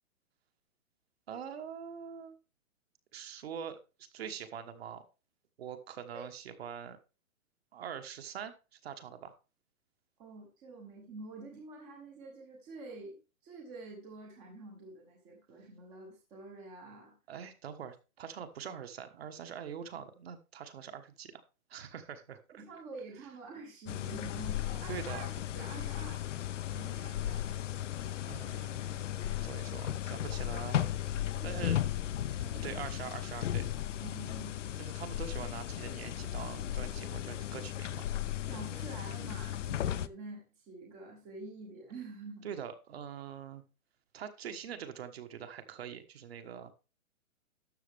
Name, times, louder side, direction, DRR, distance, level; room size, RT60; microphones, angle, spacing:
voice 1, 1.3-2.4 3.1-3.8 4.1-5.0 5.6-7.0 7.7-9.3 17.3-21.4 21.7-22.6 24.9-25.2 28.3-30.9 31.4-31.8 32.5-33.7 34.8-38.1 42.4-43.6 44.1-46.7, right 8 dB, 45° right, 8 dB, 1.4 m, -44 dB
voice 2, 10.2-13.2 13.4-17.1 22.5-25.3 25.5-26.2 26.7-27.6 30.5-30.6 31.4-31.8 32.4-32.8 33.7-34.5 38.5-42.4, right 3 dB, 10° right, -1 dB, 0.8 m, -47 dB
sound 1, 23.9-40.1, left 11 dB, 60° left, 0.6 m, -36 dB
12.5 x 7.2 x 3.5 m, 0.31 s
hypercardioid pair, 170°, 42 cm